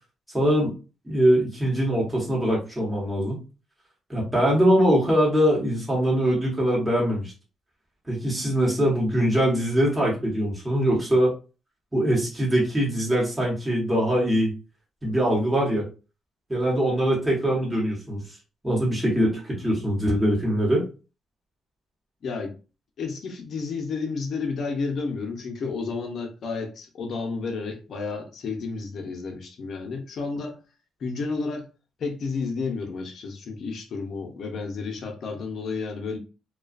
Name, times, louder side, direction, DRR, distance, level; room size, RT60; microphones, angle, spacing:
voice 1, 0.3-0.7 1.1-3.4 4.1-7.3 8.1-11.3 11.9-14.5 15.0-15.9 16.5-18.2 18.6-20.8, equal, 10° right, 1.1 m, -22 dB
voice 2, 22.2-22.5 23.0-30.6 31.0-31.7 32.0-36.2, left 4 dB, 60° left, 0.7 m, -31 dB
2.3 x 2.3 x 2.4 m
cardioid pair, 90°, 0 cm